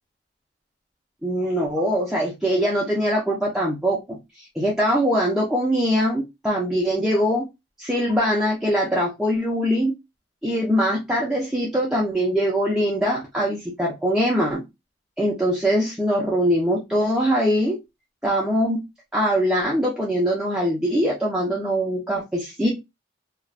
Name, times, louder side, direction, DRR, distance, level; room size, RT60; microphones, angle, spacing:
voice 1, 1.2-4.0 4.6-7.4 7.8-9.9 10.4-14.6 15.2-17.8 18.2-18.8 19.1-22.7, equal, 5° right, -5 dB, 0.5 m, -22 dB
2.4 x 2.2 x 3.2 m, 0.22 s
head